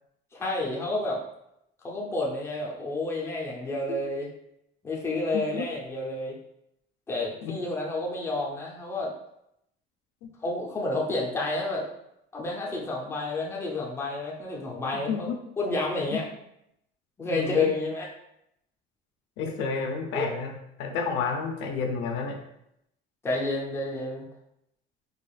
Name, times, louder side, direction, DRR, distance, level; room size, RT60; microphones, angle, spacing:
voice 1, 0.3-1.2 1.8-4.3 4.8-6.3 7.1-9.1 10.4-11.9 12.3-15.3 15.6-16.2 17.2-18.1 20.1-20.3 23.2-24.3, left 2 dB, 10° left, -3 dB, 0.5 m, -30 dB
voice 2, 5.3-5.7 7.4-7.5 10.2-10.3 15.1-15.4 16.1-16.2 17.2-17.7 19.4-20.5 20.8-22.4, left 5 dB, 65° left, 3 dB, 0.6 m, -30 dB
4.8 x 2.4 x 2.3 m, 0.79 s
cardioid pair, 160°, 21 cm